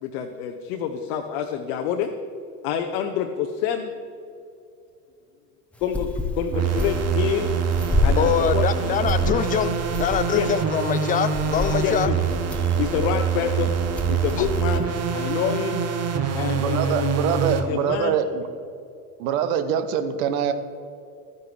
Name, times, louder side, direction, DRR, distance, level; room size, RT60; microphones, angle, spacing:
voice 1, 0.0-2.1 2.6-3.9 5.8-6.1 6.4-7.6 8.0-8.9 10.3-10.5 11.8-12.2 12.8-13.8 14.1-15.9 16.3-18.2, left 8 dB, 55° left, 5 dB, 0.8 m, -27 dB
sound 1, 5.7-15.5, left 2 dB, 5° left, 1.0 m, -29 dB
sound 2, 6.5-17.7, right 7 dB, 30° right, 1.0 m, -25 dB
voice 2, 8.2-12.1, left 8 dB, 20° left, 12 dB, 0.3 m, -24 dB
voice 3, 16.6-18.5 19.2-20.5, right 8 dB, 60° right, 11 dB, 1.0 m, -24 dB
12.0 x 9.4 x 3.4 m, 2.5 s
figure-of-eight pair, 75°, 47 cm